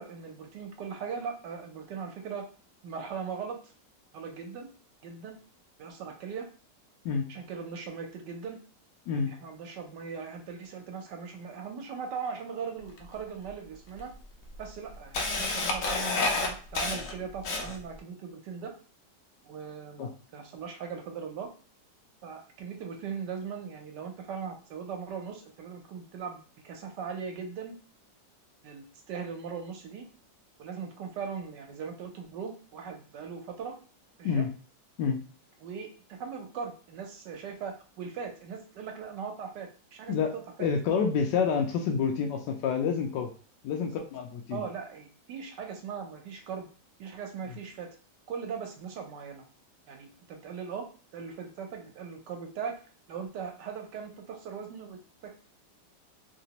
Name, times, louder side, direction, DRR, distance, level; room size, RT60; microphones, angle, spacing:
voice 1, 0.0-2.4 2.8-3.7 4.1-4.7 5.0-5.4 5.8-6.5 7.3-8.6 9.3-14.1 14.6-18.7 19.4-21.5 22.2-27.8 28.6-30.1 30.6-33.8 34.2-34.5 35.6-40.7 43.8-44.1 44.5-46.7 47.0-47.9 48.3-49.4 49.9-50.9 51.1-52.8 53.1-55.4, right 6 dB, 75° right, 3 dB, 1.3 m, -39 dB
Camera, 13.0-13.1 13.9-14.0 14.5-18.0, left 3 dB, 60° left, 0.9 m, -29 dB
voice 2, 40.6-43.3 43.6-44.6, left 6 dB, 80° left, 3 dB, 1.2 m, -28 dB
3.3 x 2.9 x 2.9 m, 0.38 s
omnidirectional pair, 1.9 m